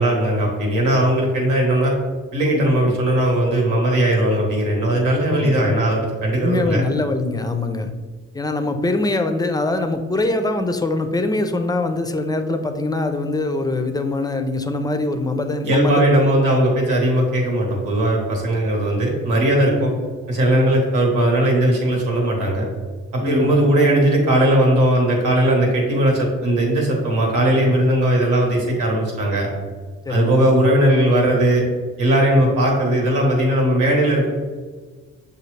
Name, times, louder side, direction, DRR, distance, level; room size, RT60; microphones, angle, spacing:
voice 1, 0.0-1.9 2.3-6.8 15.7-19.9 20.3-22.6 23.1-29.5 30.1-31.6 32.0-34.3, right 1 dB, 85° right, -1 dB, 1.3 m, -18 dB
voice 2, 5.3-5.7 6.4-7.9 8.3-16.3 19.7-19.9 20.5-20.8 23.2-23.6 30.1-30.5 32.3-32.5, left 2 dB, 15° left, 7 dB, 0.4 m, -23 dB
6.8 x 2.4 x 3.2 m, 1.4 s
cardioid pair, 90°, 30 cm